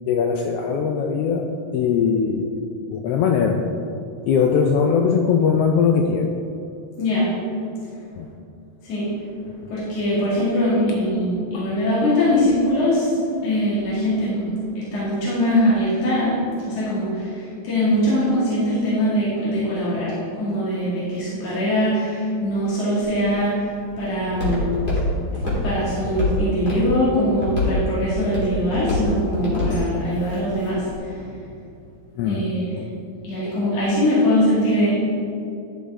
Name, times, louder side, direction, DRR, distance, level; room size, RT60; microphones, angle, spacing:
voice 1, 0.1-3.7 4.3-6.3 8.2-8.3 11.5-11.7 32.2-32.5 32.8-32.9 33.4-33.6, left 6 dB, 85° left, 3 dB, 1.3 m, -21 dB
voice 2, 7.0-7.3 8.8-9.1 9.7-13.1 13.4-14.5 14.7-23.5 24.0-24.7 25.3-30.8 31.1-31.4 32.2-32.7 33.2-35.0, equal, 60° left, -10 dB, 3.4 m, -22 dB
Walk footsteps, 23.0-31.0, left 1 dB, 20° left, 2.2 m, -27 dB
11.5 x 6.9 x 3.7 m, 2.6 s
omnidirectional pair, 3.3 m